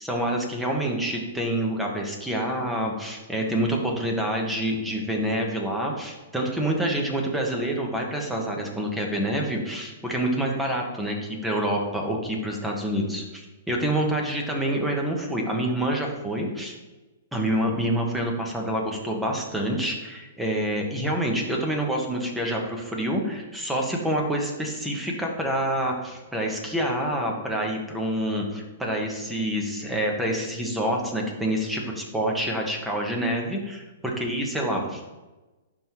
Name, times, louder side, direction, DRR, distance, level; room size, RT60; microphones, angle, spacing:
voice 1, 0.0-16.7 17.3-35.1, right 1 dB, 5° right, 0 dB, 1.2 m, -27 dB
10.5 x 3.7 x 3.1 m, 1.1 s
hypercardioid pair, 135°, 0 cm